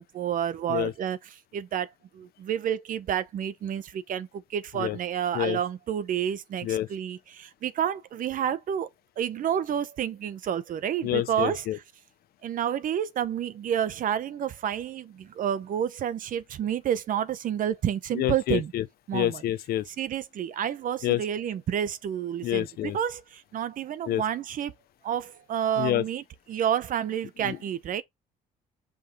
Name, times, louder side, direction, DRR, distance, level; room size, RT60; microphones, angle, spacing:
voice 1, 0.0-8.9 9.2-11.8 12.4-18.7 19.1-19.4 19.9-24.7 25.0-28.0, right 9 dB, 55° right, 0.8 m, -30 dB
voice 2, 11.0-11.8 18.1-18.8 19.1-19.8 21.0-21.2 22.4-23.0 24.1-24.2 25.8-26.0 27.4-27.6, left 13 dB, 65° left, 0.7 m, -27 dB
5.3 x 5.2 x 4.0 m
cardioid pair, 110°, 17 cm